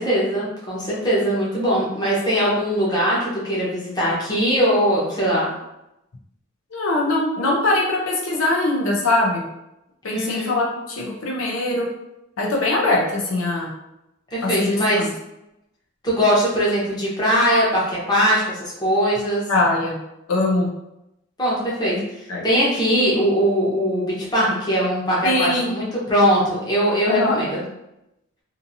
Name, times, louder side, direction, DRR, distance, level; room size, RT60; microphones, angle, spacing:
voice 1, 0.0-5.5 10.1-10.5 14.3-15.1 16.0-19.4 21.4-27.6, equal, 20° left, -7 dB, 0.8 m, -21 dB
voice 2, 6.7-9.5 10.0-11.9 12.4-13.7 14.4-15.1 19.5-20.0 20.3-20.7 22.3-22.4 25.2-25.8 27.0-27.4, left 2 dB, 70° left, -2 dB, 0.6 m, -22 dB
2.7 x 2.6 x 2.6 m, 0.88 s
head